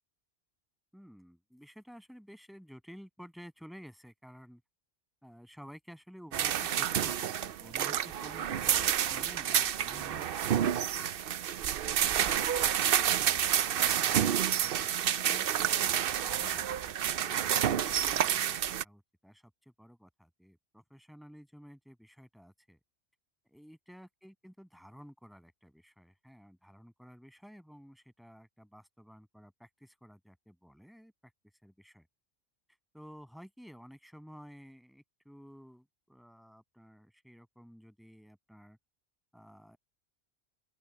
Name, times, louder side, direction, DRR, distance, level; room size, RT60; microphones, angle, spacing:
voice 1, 0.9-4.6 5.2-10.4 10.9-11.2 16.1-22.8 23.5-31.3 31.6-32.1 32.9-38.8 39.3-39.8, equal, ahead, 7.5 m, -53 dB
sound 1, 6.3-18.8, right 10 dB, 65° right, 0.8 m, -29 dB
open air
omnidirectional pair, 1.1 m